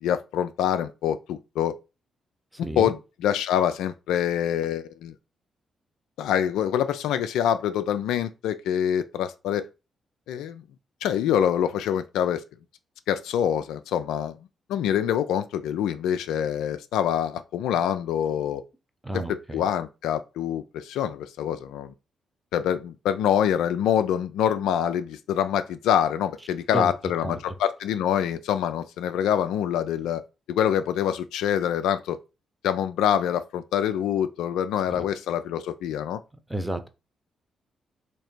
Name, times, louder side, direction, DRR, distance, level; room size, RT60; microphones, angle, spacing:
voice 1, 0.0-1.8 2.8-5.1 6.2-9.7 10.3-10.6 11.0-12.4 13.1-14.4 14.7-18.6 19.1-21.9 22.5-30.2 30.5-32.2 32.6-36.2, left 9 dB, 75° left, 0.3 m, -25 dB
voice 2, 2.5-2.9 19.0-19.6 26.7-26.9 27.2-27.4 34.9-35.0 36.5-36.9, right 1 dB, 10° right, 0.8 m, -31 dB
3.3 x 2.8 x 4.4 m
hypercardioid pair, 40°, 0 cm